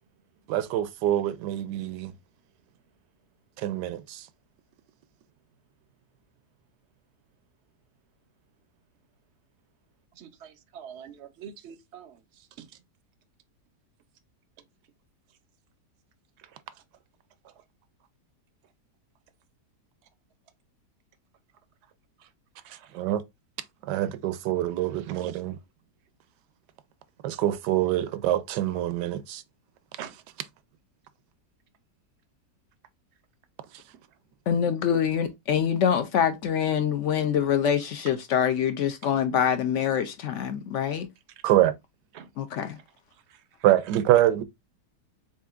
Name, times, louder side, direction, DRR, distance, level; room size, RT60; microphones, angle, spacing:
voice 1, 0.5-2.1 3.6-4.2 22.9-23.2 23.8-25.6 27.2-29.4 41.4-41.7 43.6-44.4, right 13 dB, 80° right, 1.2 m, -25 dB
voice 2, 10.2-12.2 12.6-12.7 22.6-22.9 30.0-30.1 42.1-42.3, right 8 dB, 60° right, 0.7 m, -44 dB
voice 3, 34.5-41.1 42.4-42.8, left 8 dB, 70° left, 0.7 m, -25 dB
7.1 x 2.5 x 2.4 m
omnidirectional pair, 1.8 m